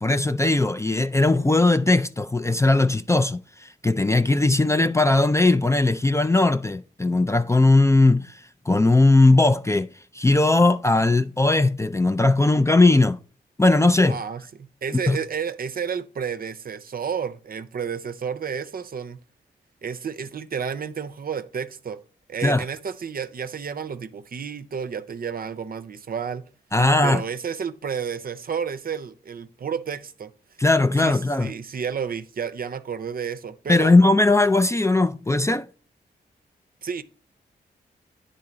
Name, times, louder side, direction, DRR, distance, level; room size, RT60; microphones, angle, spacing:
voice 1, 0.0-9.9 10.1-13.2 13.6-14.2 15.1-15.2 22.4-22.6 26.7-27.2 30.6-31.5 33.7-35.7, left 2 dB, 15° left, 0.4 m, -19 dB
voice 2, 14.1-14.4 14.8-19.2 19.8-22.0 22.3-26.4 27.0-30.3 31.0-33.9 36.8-37.0, right 7 dB, 55° right, 0.6 m, -31 dB
9.6 x 3.8 x 3.9 m
cardioid pair, 55°, 19 cm